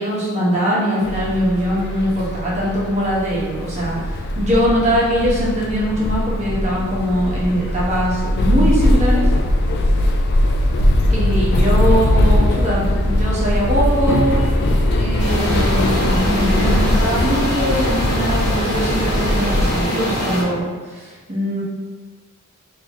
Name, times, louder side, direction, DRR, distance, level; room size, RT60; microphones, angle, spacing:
voice 1, 0.0-9.2 11.1-14.4 14.9-21.6, equal, 30° right, -7 dB, 1.1 m, -21 dB
sound 1, 1.0-19.8, left 1 dB, 50° left, 0.3 m, -20 dB
sound 2, 12.1-17.3, equal, 15° left, 0.7 m, -26 dB
sound 3, 15.2-20.4, equal, 70° left, 1.5 m, -23 dB
3.9 x 2.9 x 3.0 m, 1.4 s
head